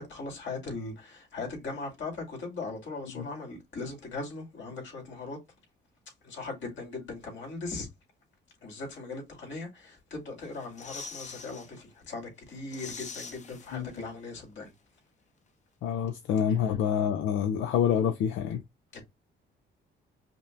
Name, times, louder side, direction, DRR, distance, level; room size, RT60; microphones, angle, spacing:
voice 1, 0.0-5.4 6.2-7.9 8.6-14.7 16.5-16.7 18.9-19.0, left 3 dB, 70° left, 2.2 m, -39 dB
sound 1, 10.4-11.7 12.1-12.2 12.5-14.3 14.5-14.6, left 5 dB, 35° left, 0.7 m, -44 dB
voice 2, 15.8-18.6, left 8 dB, 85° left, 0.5 m, -27 dB
5.3 x 2.2 x 2.6 m
cardioid pair, 90°, 20 cm